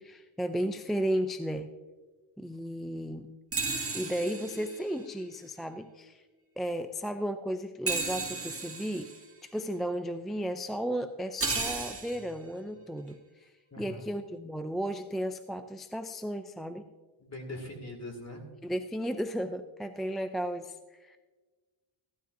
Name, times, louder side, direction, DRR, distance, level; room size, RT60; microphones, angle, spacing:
voice 1, 0.0-1.7 2.4-3.3 3.9-6.2 6.6-9.1 9.4-13.5 13.8-16.8 18.6-21.2, equal, ahead, 9 dB, 0.4 m, -34 dB
sound 1, 3.5-5.3 7.9-9.3 11.4-12.4, right 3 dB, 25° right, 2.0 m, -34 dB
voice 2, 13.7-14.1 17.2-18.4, left 1 dB, 30° left, 3 dB, 2.5 m, -41 dB
16.5 x 12.5 x 2.7 m, 1.3 s
cardioid pair, 85°, 50 cm